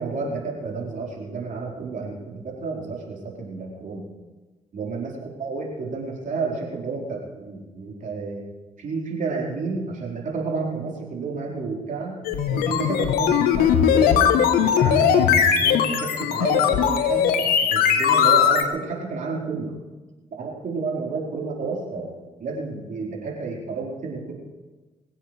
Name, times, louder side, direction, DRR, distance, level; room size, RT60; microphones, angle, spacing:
voice 1, 0.0-4.0 4.7-8.4 8.8-12.2 12.5-14.3 14.6-17.4 17.7-19.7 20.4-24.3, right 4 dB, 55° right, -3 dB, 4.6 m, -30 dB
sound 1, 12.2-18.6, left 8 dB, 75° left, 1.2 m, -19 dB
21.5 x 16.0 x 3.4 m, 1.2 s
hypercardioid pair, 45°, 16 cm